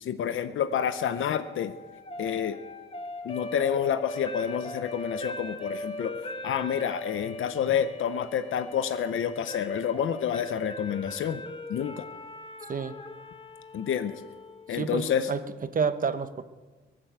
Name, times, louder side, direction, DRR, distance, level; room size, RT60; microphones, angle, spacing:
voice 1, 0.0-1.7 2.2-2.6 3.2-11.4 11.7-12.1 13.7-14.2 14.7-15.3, left 8 dB, 75° left, 11 dB, 0.8 m, -29 dB
sound 1, 0.9-15.0, left 1 dB, 25° left, 1.4 m, -40 dB
voice 2, 14.7-16.4, right 5 dB, 40° right, 11 dB, 1.0 m, -29 dB
22.5 x 7.7 x 7.9 m, 1.3 s
cardioid pair, 90°, 21 cm